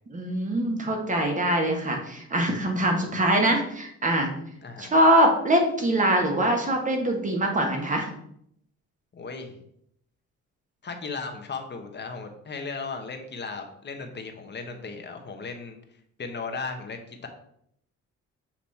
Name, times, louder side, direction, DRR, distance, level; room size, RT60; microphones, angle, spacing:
voice 1, 0.1-4.3 4.8-8.1, right 1 dB, 25° right, 2 dB, 1.6 m, -23 dB
voice 2, 4.6-4.9 9.1-9.6 10.8-15.8 16.2-17.3, left 4 dB, 35° left, 5 dB, 1.1 m, -36 dB
7.3 x 3.0 x 4.2 m, 0.70 s
cardioid pair, 90°, 30 cm